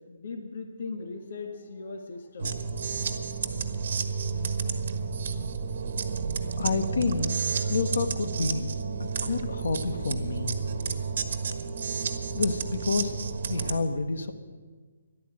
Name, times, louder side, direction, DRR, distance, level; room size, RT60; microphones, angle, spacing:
voice 1, 0.1-2.6, left 4 dB, 50° left, 5 dB, 1.6 m, -39 dB
sound 1, 2.4-13.8, right 5 dB, 50° right, 1.4 m, -31 dB
voice 2, 6.6-7.4 7.7-8.7 9.0-10.6 12.3-13.2 13.5-14.3, left 4 dB, 75° left, 9 dB, 1.4 m, -29 dB
13.5 x 11.5 x 8.9 m, 1.5 s
hypercardioid pair, 170°, 0 cm